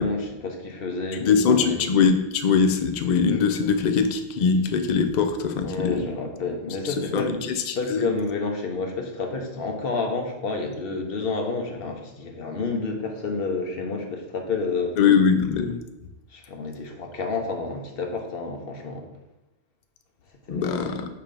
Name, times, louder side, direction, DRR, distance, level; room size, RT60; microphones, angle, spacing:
voice 1, 0.0-1.9 5.6-7.4 7.7-15.0 16.3-19.1 20.5-20.9, left 3 dB, 50° left, 3 dB, 1.0 m, -29 dB
voice 2, 1.3-6.1 6.8-8.1 15.0-15.8 20.5-21.1, left 6 dB, 85° left, 7 dB, 0.3 m, -22 dB
6.7 x 2.9 x 5.1 m, 1.0 s
omnidirectional pair, 1.4 m